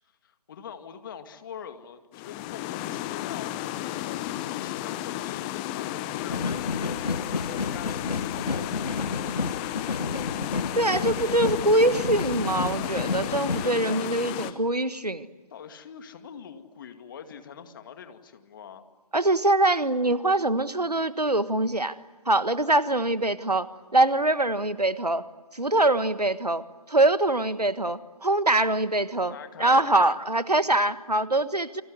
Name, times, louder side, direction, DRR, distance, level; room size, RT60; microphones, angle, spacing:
voice 1, 0.2-7.0 7.3-8.9 13.6-14.6 15.5-18.8 29.2-30.2, left 8 dB, 35° left, 8 dB, 2.2 m, -44 dB
sound 1, 2.1-14.5, left 14 dB, 15° left, 0.8 m, -33 dB
sound 2, 6.3-13.7, left 3 dB, 75° left, 0.9 m, -31 dB
voice 2, 10.7-15.3 19.1-21.9 22.2-25.2 25.5-31.8, right 2 dB, 85° right, 13 dB, 1.5 m, -24 dB
29.5 x 25.0 x 8.1 m, 1.2 s
figure-of-eight pair, 145°, 20 cm